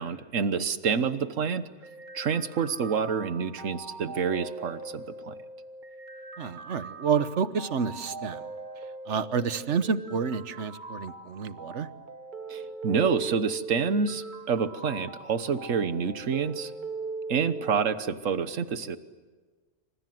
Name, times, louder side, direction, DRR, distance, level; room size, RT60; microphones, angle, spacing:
voice 1, 0.0-1.6 2.1-5.3 12.5-16.7 17.3-19.0, right 6 dB, 85° right, 12 dB, 1.5 m, -28 dB
sound 1, 1.8-17.8, right 3 dB, 40° right, 1.2 m, -40 dB
voice 2, 6.4-8.4 9.1-11.9, right 6 dB, 70° right, 13 dB, 1.4 m, -29 dB
28.0 x 26.0 x 7.8 m, 1.4 s
omnidirectional pair, 1.3 m